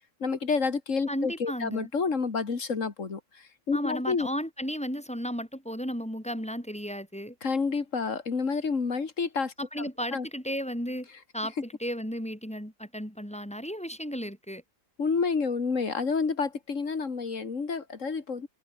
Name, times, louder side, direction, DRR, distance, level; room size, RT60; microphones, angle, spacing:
voice 1, 0.2-4.3 7.4-10.3 15.0-18.5, left 5 dB, 70° left, 2.6 m, -29 dB
voice 2, 1.1-1.9 3.7-7.4 9.6-11.1 11.3-14.6, equal, 5° left, 5.2 m, -34 dB
omnidirectional pair, 1.4 m